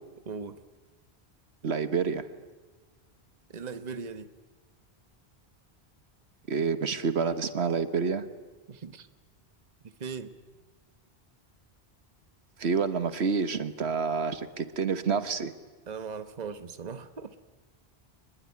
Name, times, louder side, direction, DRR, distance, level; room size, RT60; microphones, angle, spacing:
voice 1, 0.2-0.6 3.5-4.3 8.7-9.1 9.8-10.4 15.9-17.3, right 5 dB, 45° right, 11 dB, 1.1 m, -39 dB
voice 2, 1.6-2.2 6.5-8.3 12.6-15.5, right 5 dB, 85° right, 11 dB, 1.5 m, -28 dB
25.0 x 21.0 x 9.6 m, 1.3 s
omnidirectional pair, 1.1 m